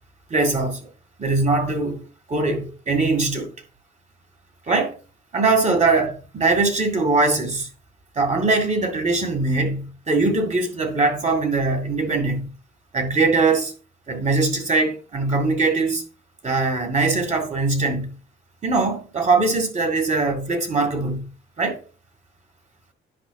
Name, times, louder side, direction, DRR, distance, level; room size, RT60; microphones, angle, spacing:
voice 1, 0.3-0.8 1.2-2.0 2.3-3.5 4.7-5.0 5.3-7.7 8.2-12.5 12.9-13.7 14.1-16.0 16.4-18.1 18.6-21.2 21.6-21.8, right 3 dB, 35° right, 2.2 m, -21 dB
9.9 x 5.5 x 2.4 m
cardioid pair, 90°, 20 cm